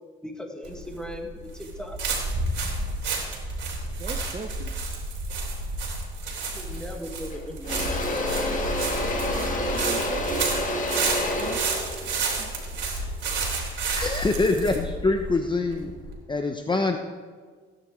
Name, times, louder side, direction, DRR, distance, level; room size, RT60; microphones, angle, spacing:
voice 1, 0.2-2.0 6.5-8.1, equal, 5° left, 2 dB, 1.9 m, -38 dB
sound 1, 0.6-16.2, right 3 dB, 65° right, 3.2 m, -30 dB
voice 2, 4.0-4.7 9.3-10.5 11.4-11.6 12.3-12.5, right 4 dB, 30° right, 6 dB, 0.7 m, -39 dB
Engine / Drill, 6.7-7.0 7.3-13.4, left 1 dB, 40° left, 1.9 m, -29 dB
voice 3, 13.9-15.9 16.3-17.0, left 3 dB, 25° left, 5 dB, 0.8 m, -24 dB
17.0 x 9.7 x 3.2 m, 1.5 s
cardioid pair, 90°, 20 cm